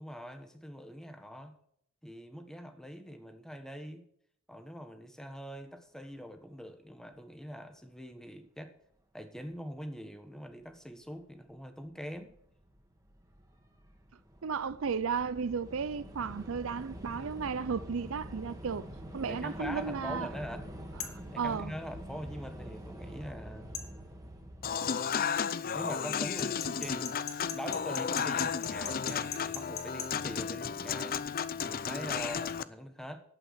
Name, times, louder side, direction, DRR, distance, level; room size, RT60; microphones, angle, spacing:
voice 1, 0.0-1.6 2.0-4.0 4.5-8.7 9.1-12.4 19.3-20.7 21.3-23.9 25.7-27.1 27.5-31.2 31.6-33.2, equal, 5° left, 1.3 m, -43 dB
Train / Subway metro underground, 10.7-10.8 11.6-11.9 12.1-24.7, equal, 15° right, 1.8 m, -46 dB
voice 2, 14.4-18.9 19.1-20.3 21.0-21.7, right 6 dB, 75° right, 0.5 m, -34 dB
sound 1, 21.0-21.2 23.7-23.9 26.4-30.1, left 8 dB, 75° left, 1.5 m, -39 dB
Human voice / Acoustic guitar / Piano, 24.6-32.6, left 7 dB, 45° left, 0.5 m, -33 dB
11.5 x 8.5 x 6.5 m
head